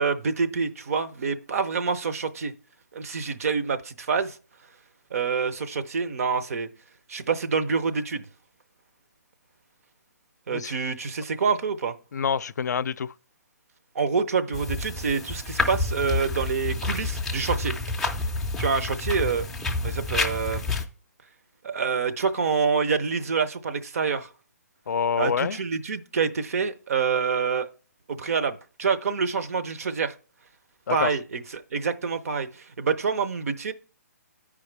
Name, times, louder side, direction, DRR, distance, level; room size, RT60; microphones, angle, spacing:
voice 1, 0.0-2.5 2.9-4.4 5.1-6.7 7.1-8.2 10.5-12.0 13.9-17.7 18.6-19.5 19.8-20.6 21.6-24.3 25.2-27.7 28.1-30.1 30.9-33.7, right 5 dB, 60° right, 0.7 m, -27 dB
voice 2, 12.1-13.1 24.9-25.6 30.9-31.1, left 7 dB, 80° left, 0.4 m, -26 dB
sound 1, 14.5-20.8, left 3 dB, 5° left, 0.4 m, -29 dB
13.0 x 4.9 x 3.3 m
hypercardioid pair, 160°, 9 cm